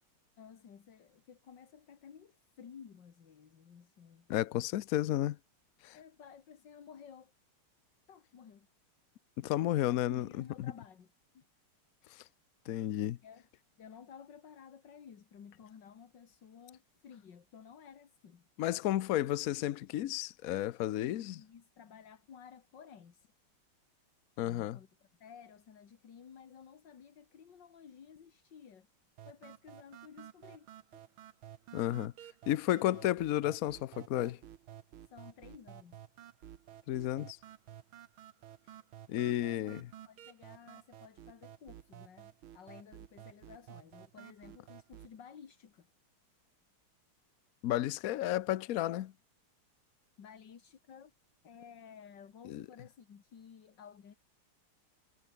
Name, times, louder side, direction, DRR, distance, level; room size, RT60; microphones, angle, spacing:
voice 1, 0.4-4.3 5.9-7.3 8.1-8.7 9.6-11.5 13.2-13.5 13.8-18.5 21.0-23.3 24.4-28.9 29.3-30.7 30.9-31.1 35.1-36.0 39.6-39.7 40.1-45.9 50.2-51.1 51.4-54.2, left 7 dB, 60° left, 2.4 m, -54 dB
voice 2, 4.3-5.4 5.8-6.0 9.4-10.3 12.1-12.2 12.7-13.2 18.6-21.3 24.4-24.8 31.7-32.1 32.5-34.4 36.9-37.4 39.1-39.9 47.6-49.1 52.5-52.6, left 13 dB, 85° left, 0.7 m, -32 dB
sound 1, 29.2-45.2, right 11 dB, 75° right, 1.9 m, -53 dB
omnidirectional pair, 2.3 m